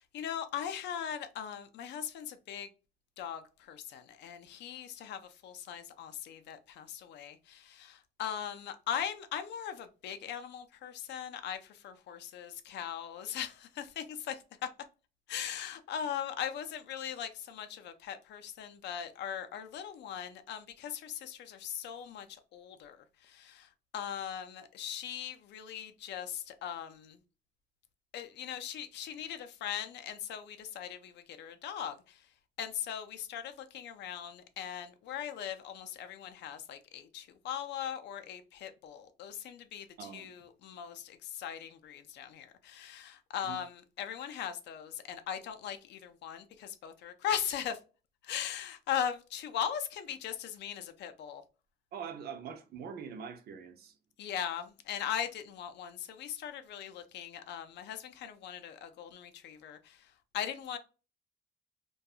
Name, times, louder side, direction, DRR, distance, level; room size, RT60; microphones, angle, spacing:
voice 1, 0.1-2.7 3.2-3.4 3.7-14.4 15.3-22.3 22.5-23.0 23.3-23.7 23.9-27.2 28.1-32.2 32.6-47.8 48.2-51.4 54.2-60.0 60.3-60.8, left 9 dB, 80° left, 0.4 m, -39 dB
voice 2, 40.0-40.3 43.4-43.6 51.9-53.9, right 7 dB, 65° right, 0.5 m, -43 dB
2.3 x 2.2 x 2.7 m
cardioid pair, 160°, 18 cm